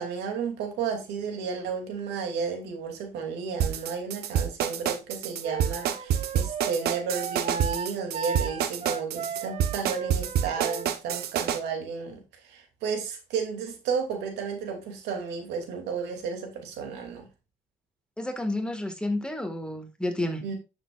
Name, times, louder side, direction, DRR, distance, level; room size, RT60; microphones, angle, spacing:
voice 1, 0.0-17.3 20.4-20.6, right 5 dB, 85° right, 2.7 m, -33 dB
sound 1, 3.6-11.6, right 9 dB, 70° right, 1.0 m, -27 dB
Wind instrument woodwind instrument, 5.4-10.9, right 6 dB, 40° right, 1.0 m, -35 dB
voice 2, 18.2-20.4, left 1 dB, 5° left, 1.8 m, -30 dB
10.5 x 6.9 x 2.5 m
cardioid pair, 110°, 17 cm